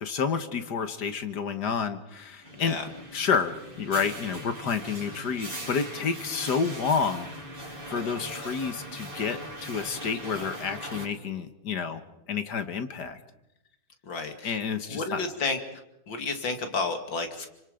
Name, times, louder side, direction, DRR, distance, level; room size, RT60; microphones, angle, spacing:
voice 1, 0.0-2.8 3.1-7.3 7.6-12.0 12.3-13.2 14.4-15.2, left 6 dB, 65° left, 9 dB, 2.0 m, -29 dB
sound 1, 2.4-11.1, right 1 dB, 25° right, 3.7 m, -40 dB
voice 2, 14.1-14.6 14.9-15.8 16.1-17.5, left 3 dB, 80° left, 6 dB, 3.0 m, -31 dB
29.0 x 25.5 x 5.1 m, 0.87 s
omnidirectional pair, 2.0 m